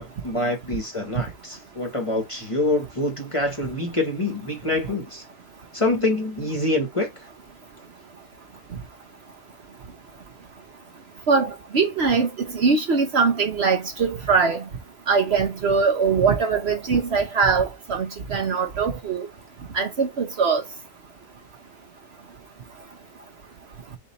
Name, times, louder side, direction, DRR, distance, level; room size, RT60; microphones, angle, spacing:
voice 1, 0.0-5.2 5.7-7.1, left 2 dB, 25° left, 1.0 m, -26 dB
voice 2, 11.3-14.6 15.1-19.3 19.7-20.6, right 5 dB, 55° right, 1.0 m, -22 dB
4.2 x 2.7 x 4.0 m
omnidirectional pair, 1.5 m